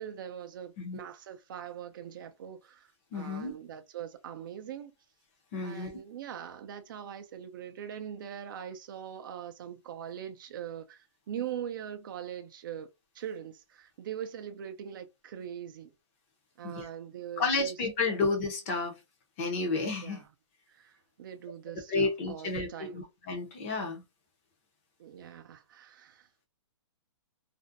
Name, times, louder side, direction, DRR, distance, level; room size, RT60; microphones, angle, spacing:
voice 1, 0.0-2.9 3.1-4.9 5.6-12.9 13.1-15.9 16.6-17.8 18.0-18.2 20.0-20.3 20.7-23.0 25.0-26.5, right 9 dB, 45° right, 0.4 m, -42 dB
voice 2, 3.1-3.6 5.5-6.0 16.6-16.9 17.4-18.9 19.4-20.2 21.9-24.0, left 3 dB, 25° left, 0.6 m, -31 dB
2.5 x 2.1 x 2.5 m
hypercardioid pair, 165°, 16 cm